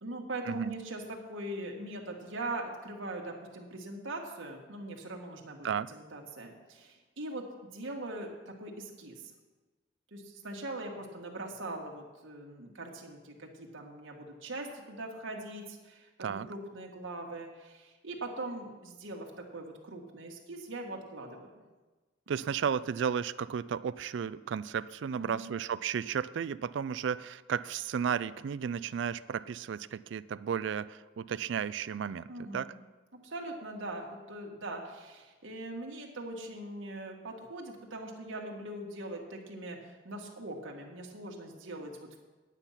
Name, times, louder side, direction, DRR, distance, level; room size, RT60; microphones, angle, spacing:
voice 1, 0.0-7.4 7.7-9.2 10.1-21.6 22.3-22.4 25.1-25.6 32.3-32.8 33.2-42.2, right 2 dB, 80° right, 1 dB, 1.7 m, -41 dB
voice 2, 22.3-32.3 32.5-32.7, right 7 dB, 65° right, 16 dB, 0.3 m, -33 dB
9.8 x 9.0 x 5.7 m, 1.2 s
head